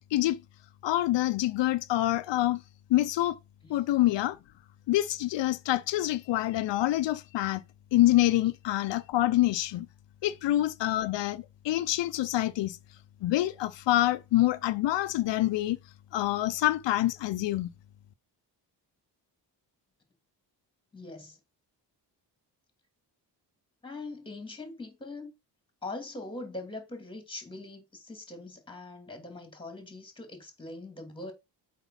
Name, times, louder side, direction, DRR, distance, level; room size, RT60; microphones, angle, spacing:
voice 1, 0.8-2.6 2.9-3.4 3.7-4.4 4.9-7.6 7.9-9.9 10.2-12.8 13.2-15.8 16.1-17.7, left 15 dB, 85° left, 0.7 m, -26 dB
voice 2, 20.9-21.4 23.8-25.3 25.8-31.3, left 2 dB, 10° left, 2.7 m, -42 dB
8.1 x 4.5 x 5.7 m
wide cardioid pair, 155°, 42 cm